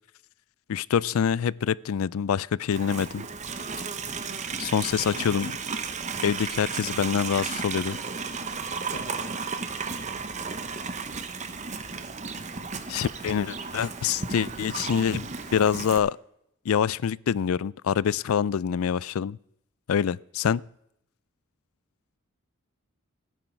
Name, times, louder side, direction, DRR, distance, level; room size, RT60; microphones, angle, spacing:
voice 1, 0.7-3.2 4.6-5.5 6.2-8.0 12.9-16.2 16.7-19.4 19.9-20.6, left 7 dB, 70° left, 0.4 m, -26 dB
Livestock farm animals working animals, 2.7-16.0, right 5 dB, 35° right, 0.9 m, -34 dB
voice 2, 4.9-5.3 8.9-9.4 12.4-12.5, equal, 40° left, 3.2 m, -42 dB
14.5 x 10.0 x 4.5 m
head